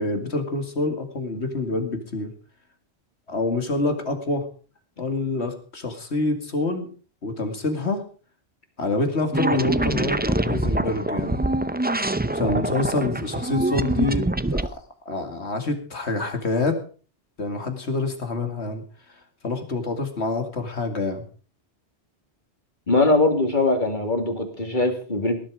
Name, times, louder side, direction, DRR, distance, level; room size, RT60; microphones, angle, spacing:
voice 1, 0.0-2.3 3.3-4.5 5.0-6.9 7.2-8.0 8.8-11.4 12.3-16.8 17.4-18.8 19.1-21.2, left 2 dB, 75° left, 6 dB, 2.6 m, -27 dB
sound 1, 9.3-14.7, right 2 dB, 15° right, 0.4 m, -24 dB
voice 2, 22.9-25.3, left 2 dB, 45° left, 5 dB, 2.9 m, -21 dB
18.5 x 11.5 x 4.9 m, 0.40 s
omnidirectional pair, 1.1 m